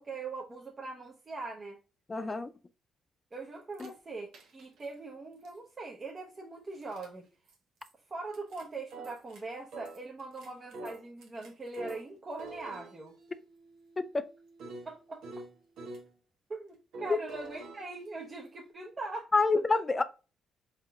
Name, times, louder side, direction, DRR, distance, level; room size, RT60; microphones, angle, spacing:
voice 1, 0.0-1.8 3.3-7.3 8.1-13.1 14.8-15.2 16.5-19.3, right 3 dB, 35° right, 0.9 m, -41 dB
voice 2, 2.1-2.5 3.8-3.9 14.0-14.3 19.3-20.0, left 3 dB, 25° left, 0.4 m, -27 dB
sound 1, 3.7-3.9 4.3-4.9 5.4-5.5 6.7-7.1 7.5-7.6 7.8-7.9 8.3-9.4 9.7-12.1 12.4-16.1 16.9-18.7, right 2 dB, 80° right, 1.1 m, -47 dB
4.4 x 3.6 x 2.3 m
cardioid pair, 90°, 0 cm